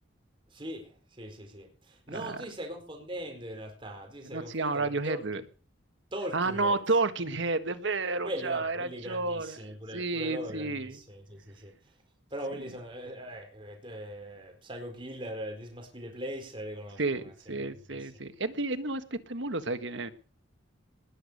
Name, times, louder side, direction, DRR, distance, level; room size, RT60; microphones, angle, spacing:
voice 1, 0.5-5.2 6.1-6.8 8.2-12.0 12.3-17.5 17.9-18.1, equal, 25° right, 3 dB, 4.4 m, -40 dB
voice 2, 4.3-5.4 6.3-9.5 9.9-11.0 17.0-20.1, right 3 dB, 65° right, 10 dB, 1.5 m, -31 dB
20.0 x 8.3 x 6.7 m, 0.38 s
head